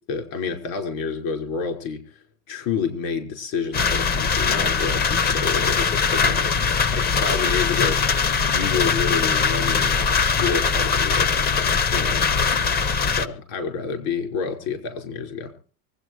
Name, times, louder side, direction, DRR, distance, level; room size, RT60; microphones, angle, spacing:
voice 1, 0.1-2.2 2.5-8.0 8.3-10.0 10.3-12.2 12.6-12.7 13.1-15.5, left 5 dB, 70° left, 5 dB, 5.5 m, -29 dB
sound 1, 3.7-13.3, left 5 dB, 25° left, 0.7 m, -21 dB
24.5 x 9.2 x 4.8 m, 0.41 s
supercardioid pair, 140°, 41 cm